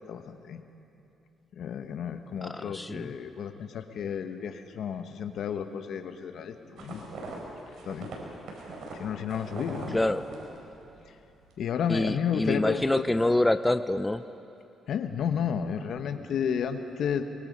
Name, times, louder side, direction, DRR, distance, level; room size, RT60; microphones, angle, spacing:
voice 1, 0.1-0.6 1.6-7.0 7.9-8.1 8.9-10.0 11.6-12.8 13.2-13.3 14.9-17.2, left 7 dB, 70° left, 8 dB, 1.2 m, -32 dB
voice 2, 2.4-3.1 9.9-10.2 11.9-14.2, left 1 dB, 10° left, 11 dB, 0.5 m, -26 dB
sound 1, 6.8-11.1 11.4-11.9, right 2 dB, 70° right, 4.7 m, -41 dB
23.0 x 22.0 x 5.4 m, 2.8 s
cardioid pair, 90°, 0 cm